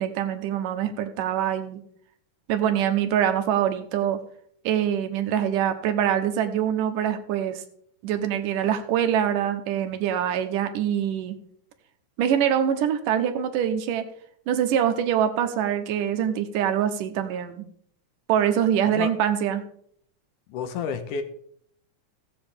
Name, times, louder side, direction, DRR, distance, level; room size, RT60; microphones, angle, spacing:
voice 1, 0.0-1.8 2.5-4.2 4.6-7.6 8.0-11.4 12.2-14.1 14.5-17.6 18.3-19.6, right 9 dB, 85° right, 7 dB, 2.5 m, -24 dB
voice 2, 20.5-21.2, left 6 dB, 75° left, 8 dB, 2.5 m, -30 dB
16.5 x 7.8 x 3.5 m, 0.65 s
omnidirectional pair, 3.7 m